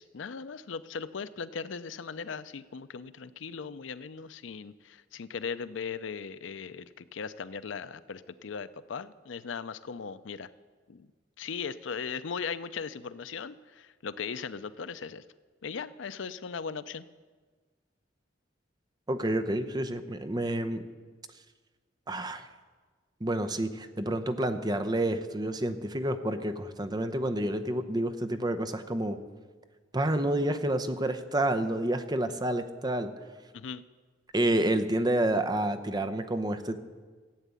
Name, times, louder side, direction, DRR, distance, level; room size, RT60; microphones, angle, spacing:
voice 1, 0.0-10.5 10.9-11.1 11.4-15.2 15.6-17.1 33.5-33.8, left 5 dB, 80° left, 15 dB, 0.5 m, -38 dB
voice 2, 19.1-20.8 22.1-22.5 23.2-29.2 29.9-33.1 34.3-36.8, right 1 dB, 20° right, 9 dB, 0.7 m, -29 dB
14.5 x 8.3 x 8.2 m, 1.4 s
head